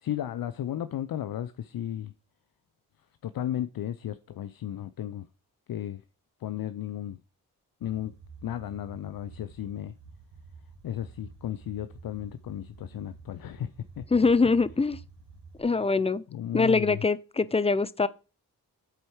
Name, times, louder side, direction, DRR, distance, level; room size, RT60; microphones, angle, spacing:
voice 1, 0.0-2.1 3.2-5.3 5.7-6.0 6.4-7.2 7.8-8.1 8.4-9.9 10.8-13.7 14.0-14.5 16.3-17.0, left 11 dB, 60° left, 0.6 m, -34 dB
sound 1, 7.8-15.6, right 4 dB, 90° right, 1.7 m, -50 dB
voice 2, 14.1-15.0 15.6-16.2 16.5-18.1, left 4 dB, 15° left, 0.5 m, -23 dB
7.8 x 4.5 x 4.8 m
supercardioid pair, 45°, 41 cm